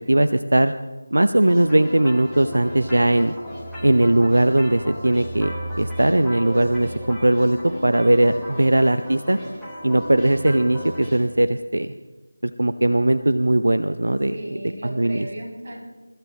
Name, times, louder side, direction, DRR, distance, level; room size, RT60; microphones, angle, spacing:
voice 1, 0.1-0.7 1.1-3.3 3.8-9.4 9.8-11.9 12.4-14.4 14.8-15.3, right 1 dB, 65° right, 10 dB, 0.8 m, -19 dB
sound 1, 1.4-11.2, equal, ahead, 4.0 m, -35 dB
voice 2, 14.3-15.8, right 1 dB, 30° right, -6 dB, 7.0 m, -35 dB
28.5 x 15.0 x 3.0 m, 1.2 s
figure-of-eight pair, 165°, 0 cm